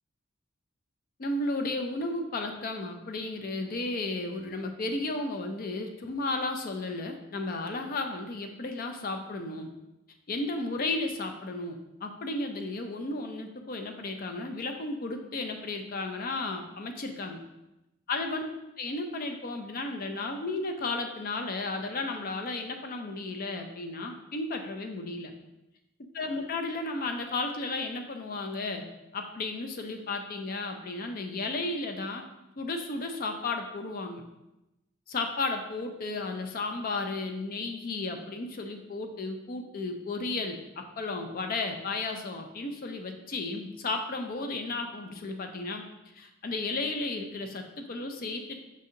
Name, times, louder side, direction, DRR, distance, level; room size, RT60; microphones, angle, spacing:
voice 1, 1.2-9.7 10.3-17.4 18.1-18.4 18.8-25.3 26.1-28.8 29.1-32.3 32.6-34.2 35.1-45.8 46.1-48.6, left 2 dB, 45° left, 5 dB, 0.4 m, -34 dB
5.2 x 2.7 x 3.7 m, 0.96 s
head